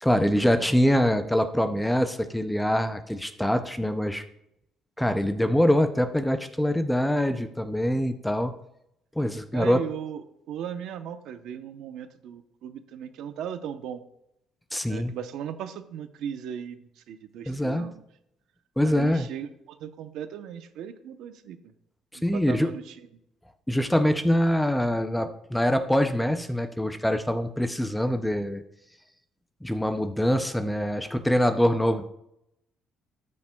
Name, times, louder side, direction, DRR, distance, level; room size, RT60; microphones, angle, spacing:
voice 1, 0.0-4.2 5.0-8.5 9.2-9.8 14.7-15.1 17.5-17.9 18.8-19.3 22.2-22.7 23.7-28.6 29.6-32.0, equal, 5° left, 8 dB, 0.4 m, -24 dB
voice 2, 9.5-10.2 10.5-14.0 14.9-18.0 18.8-21.6 22.3-22.8 31.6-31.8, right 9 dB, 70° right, 9 dB, 0.7 m, -37 dB
13.0 x 8.5 x 2.3 m, 0.80 s
cardioid pair, 175°, 0 cm